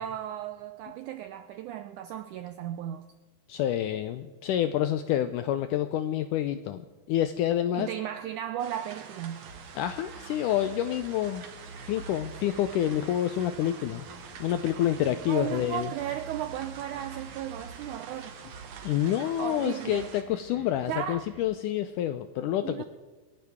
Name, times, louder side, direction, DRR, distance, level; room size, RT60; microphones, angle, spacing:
voice 1, 0.0-3.0 7.7-9.5 15.3-18.3 19.4-20.1 20.9-21.3 22.6-22.8, right 11 dB, 85° right, 1.7 m, -35 dB
voice 2, 3.5-7.9 9.7-11.4 11.9-14.0 14.4-15.9 18.8-22.8, left 11 dB, 85° left, 1.9 m, -28 dB
sound 1, 8.6-20.2, right 6 dB, 60° right, 2.6 m, -47 dB
sound 2, 9.4-21.4, right 3 dB, 40° right, 1.7 m, -48 dB
27.0 x 11.0 x 3.5 m
omnidirectional pair, 4.3 m